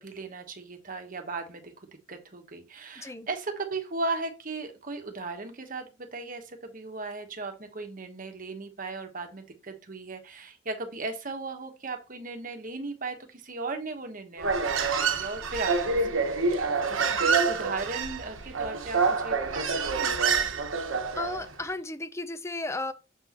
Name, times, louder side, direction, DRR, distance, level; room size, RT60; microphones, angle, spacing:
voice 1, 0.0-16.0 16.3-19.7 19.9-20.6, right 3 dB, 45° right, 1.1 m, -37 dB
voice 2, 3.0-3.3 21.2-22.9, left 2 dB, 15° left, 0.5 m, -34 dB
Human voice, 14.4-21.5, right 4 dB, 85° right, 1.0 m, -27 dB
6.8 x 6.1 x 2.9 m
head